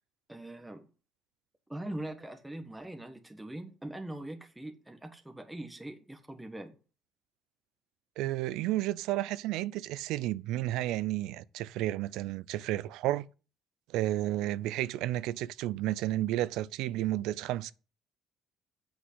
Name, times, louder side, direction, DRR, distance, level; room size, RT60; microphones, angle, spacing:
voice 1, 0.3-0.9 1.7-6.8, right 1 dB, 5° right, 1.4 m, -42 dB
voice 2, 8.2-13.3 13.9-17.7, right 15 dB, 80° right, 0.5 m, -32 dB
8.1 x 6.2 x 8.0 m
cardioid pair, 135°, 0 cm